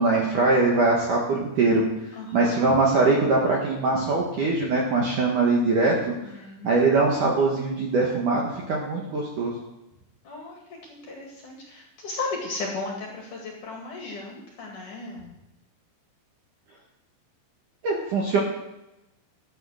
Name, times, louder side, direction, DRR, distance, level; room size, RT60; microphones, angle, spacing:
voice 1, 0.0-1.8 2.3-5.9 6.6-9.5 17.8-18.4, right 3 dB, 60° right, -2 dB, 2.3 m, -22 dB
voice 2, 2.2-2.8 5.9-6.8 10.2-10.6 10.9-15.3, left 3 dB, 50° left, -1 dB, 2.8 m, -36 dB
14.0 x 9.4 x 6.4 m, 0.94 s
omnidirectional pair, 5.9 m